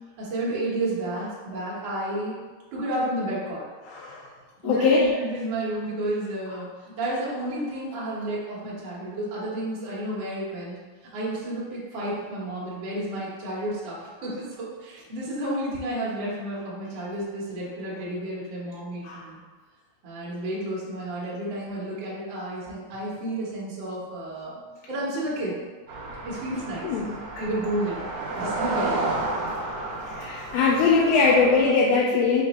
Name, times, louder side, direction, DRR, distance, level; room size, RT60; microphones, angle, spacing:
voice 1, 0.2-2.4 2.7-3.6 4.6-6.7 7.0-10.8 11.1-19.4 20.0-24.6 24.9-25.6 26.2-26.9 27.4-27.9 28.4-29.0, right 1 dB, 65° right, -7 dB, 1.2 m, -31 dB
voice 2, 3.9-4.2 4.6-5.0 19.0-19.2 26.8-27.1 30.1-32.4, left 4 dB, 85° left, -5 dB, 2.4 m, -21 dB
sound 1, 25.9-31.7, right 2 dB, 85° right, 1.5 m, -32 dB
5.6 x 2.2 x 4.1 m, 1.4 s
omnidirectional pair, 4.2 m